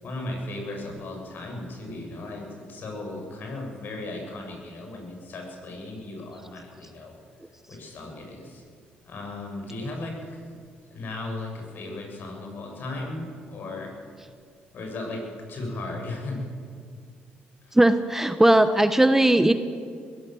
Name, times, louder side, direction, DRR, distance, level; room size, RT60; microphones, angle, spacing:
voice 1, 0.0-7.2 7.7-8.6 9.0-10.4 10.9-13.9 14.7-15.2 15.5-16.4 17.6-17.8, left 2 dB, 60° left, 2 dB, 7.2 m, -36 dB
voice 2, 17.7-19.5, right 1 dB, 10° right, 10 dB, 1.1 m, -18 dB
21.5 x 16.5 x 7.8 m, 2.1 s
supercardioid pair, 75°, 4 cm